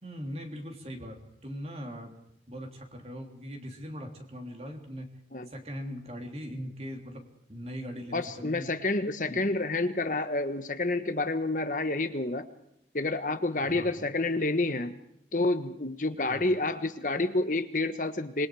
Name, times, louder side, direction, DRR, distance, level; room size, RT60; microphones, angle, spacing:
voice 1, 0.0-2.2 2.5-5.1 5.5-8.7 9.3-9.4 13.7-13.9 16.3-16.4, equal, 35° right, 3 dB, 3.4 m, -40 dB
voice 2, 8.1-12.4 12.9-15.0 15.3-18.5, left 2 dB, 45° left, 9 dB, 1.3 m, -29 dB
26.5 x 21.5 x 4.9 m, 0.76 s
head